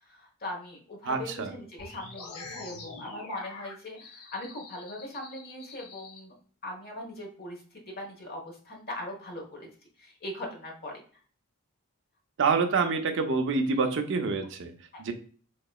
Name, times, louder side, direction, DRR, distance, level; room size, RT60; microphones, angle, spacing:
voice 1, 0.0-6.3 6.6-9.7 10.0-10.9 14.9-15.1, left 1 dB, 45° left, 0 dB, 1.2 m, -40 dB
voice 2, 1.0-1.5 12.4-14.7 15.0-15.1, right 4 dB, 60° right, 6 dB, 0.5 m, -27 dB
sound 1, 1.8-6.2, left 3 dB, 80° left, 0.7 m, -45 dB
3.8 x 2.9 x 2.3 m, 0.42 s
head